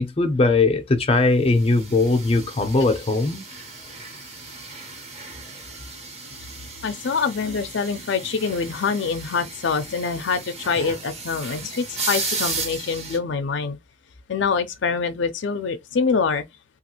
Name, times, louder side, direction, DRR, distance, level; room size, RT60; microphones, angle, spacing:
voice 1, 0.0-3.4, left 3 dB, 35° left, 0.6 m, -20 dB
sound 1, 1.6-13.2, right 3 dB, 35° right, 1.1 m, -35 dB
voice 2, 6.8-13.8 14.3-16.5, left 5 dB, 75° left, 0.5 m, -25 dB
3.1 x 2.4 x 2.9 m
head